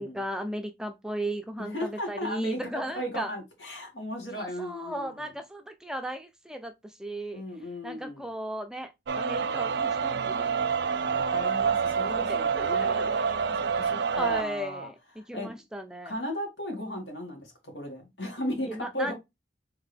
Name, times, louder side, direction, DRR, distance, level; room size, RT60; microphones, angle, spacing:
voice 1, 0.0-3.3 4.4-6.7 7.0-7.4 7.8-8.9 9.2-10.6 12.3-13.2 14.2-14.9 15.3-16.1 18.7-19.1, right 1 dB, 5° right, 0.4 m, -36 dB
voice 2, 1.6-2.6 3.0-5.3 7.3-8.3 11.1-14.9 15.2-15.5 16.0-19.1, equal, 80° left, 2.2 m, -36 dB
sound 1, 9.1-14.4, right 6 dB, 75° right, 0.4 m, -27 dB
3.8 x 3.5 x 3.4 m
head